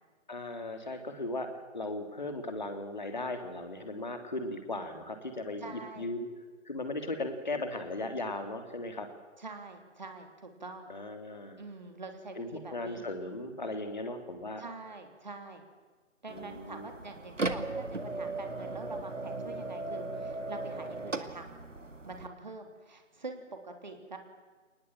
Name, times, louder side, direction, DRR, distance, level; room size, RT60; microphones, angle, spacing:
voice 1, 0.3-1.5 1.7-6.3 6.6-9.1 10.9-11.6 12.4-14.6 16.3-16.9, left 2 dB, 35° left, 6 dB, 3.1 m, -37 dB
voice 2, 5.6-6.1 9.4-10.9 11.6-13.0 14.6-15.6 16.2-21.5 22.0-24.2, right 3 dB, 35° right, 5 dB, 3.3 m, -45 dB
sound 1, 16.3-22.3, right 2 dB, 70° right, 2.3 m, -37 dB
30.0 x 20.0 x 7.4 m, 1.4 s
figure-of-eight pair, 165°, 39 cm